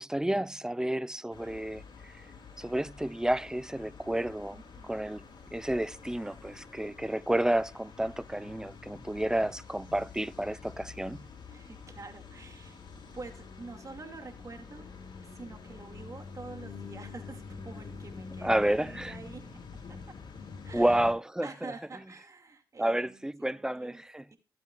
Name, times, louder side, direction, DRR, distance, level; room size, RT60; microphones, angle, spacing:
voice 1, 0.0-2.1 2.6-4.6 4.9-5.2 5.5-11.2 18.4-19.2 20.7-21.5 22.8-24.2, right 1 dB, 10° right, 0.6 m, -30 dB
sound 1, 1.3-21.1, left 5 dB, 70° left, 3.1 m, -47 dB
voice 2, 4.5-5.0 11.5-12.8 13.1-15.0 15.2-19.4 19.9-20.2 20.6-21.1 21.4-24.4, right 3 dB, 45° right, 2.4 m, -47 dB
17.5 x 7.9 x 2.5 m
cardioid pair, 60°, 8 cm